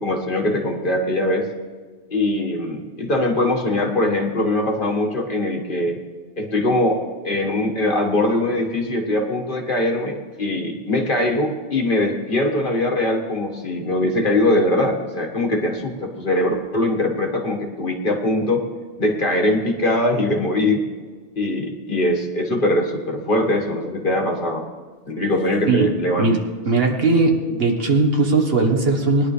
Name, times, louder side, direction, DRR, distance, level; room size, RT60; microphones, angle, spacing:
voice 1, 0.0-1.5 2.1-6.0 6.4-18.6 19.0-20.9 21.4-24.7 25.1-26.3, left 1 dB, 55° left, 1 dB, 1.8 m, -21 dB
voice 2, 25.7-29.3, right 3 dB, 65° right, 3 dB, 1.7 m, -19 dB
20.5 x 11.0 x 3.3 m, 1.5 s
omnidirectional pair, 1.1 m